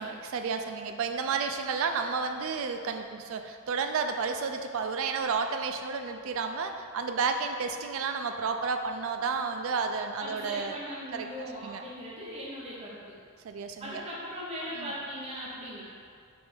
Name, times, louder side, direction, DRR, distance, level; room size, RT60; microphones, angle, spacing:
voice 1, 0.0-10.8 11.1-11.3 11.6-11.8 13.4-14.0 14.7-14.9, right 5 dB, 65° right, 6 dB, 0.3 m, -31 dB
voice 2, 10.2-13.1 13.8-15.8, equal, 25° right, -7 dB, 0.7 m, -39 dB
4.2 x 3.2 x 3.6 m, 2.2 s
head